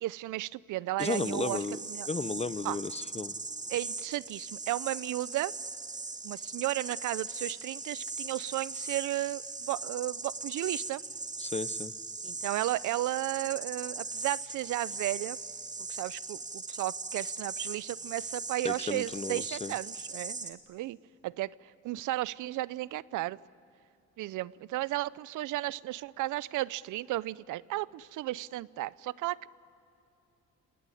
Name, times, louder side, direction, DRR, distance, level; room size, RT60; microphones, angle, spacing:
voice 1, 0.0-1.6 1.9-2.1 2.6-2.8 3.7-5.5 6.2-11.0 12.2-15.4 15.9-21.0 21.2-23.4 24.2-29.5, right 16 dB, 80° right, 21 dB, 0.6 m, -34 dB
voice 2, 1.0-1.8 2.1-3.3 11.4-11.9 18.6-19.7, left 4 dB, 20° left, 16 dB, 0.8 m, -34 dB
sound 1, 1.0-20.5, right 3 dB, 25° right, 2.1 m, -39 dB
27.5 x 19.0 x 9.9 m, 2.9 s
cardioid pair, 90°, 30 cm